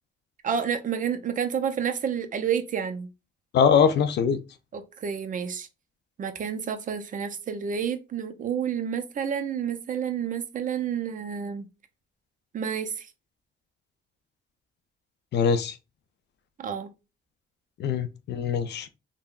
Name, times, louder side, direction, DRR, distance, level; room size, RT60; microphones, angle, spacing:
voice 1, 0.4-3.1 4.7-5.7 6.2-11.7 12.5-13.1 16.6-16.9, right 7 dB, 40° right, 0.4 m, -29 dB
voice 2, 3.5-4.4 15.3-15.8 17.8-18.9, left 7 dB, 60° left, 0.4 m, -22 dB
3.5 x 2.1 x 2.3 m
cardioid pair, 90°, 20 cm